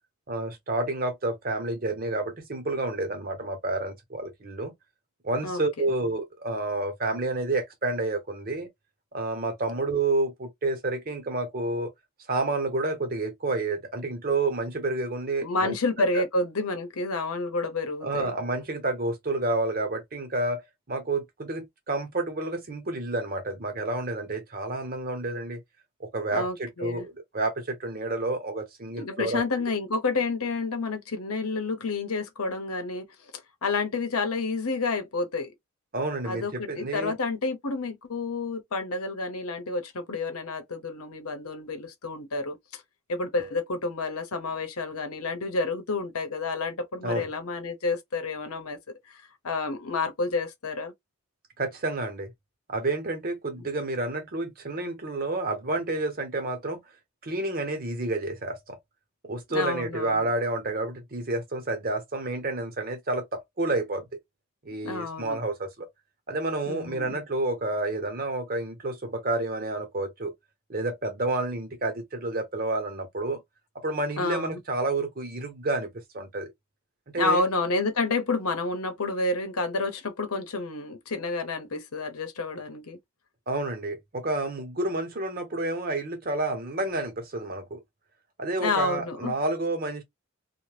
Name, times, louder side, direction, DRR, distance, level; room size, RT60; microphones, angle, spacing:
voice 1, 0.3-4.7 5.2-8.7 9.1-11.9 12.3-15.8 16.1-16.2 18.0-25.6 26.0-29.4 35.9-37.1 47.0-47.3 51.6-52.3 52.7-56.8 57.2-58.8 59.2-64.1 64.6-65.9 66.3-70.3 70.7-73.4 73.8-76.5 77.1-77.4 83.5-87.8 88.4-90.0, right 2 dB, 40° right, 0.8 m, -29 dB
voice 2, 5.4-5.9 15.4-18.3 26.3-27.1 29.0-33.1 33.6-35.5 36.2-42.8 43.1-48.8 49.1-50.9 53.6-53.7 59.5-60.3 64.8-65.4 66.7-67.2 74.2-74.6 77.1-83.0 88.6-89.4, left 3 dB, 80° left, 0.8 m, -29 dB
2.7 x 2.2 x 3.2 m
head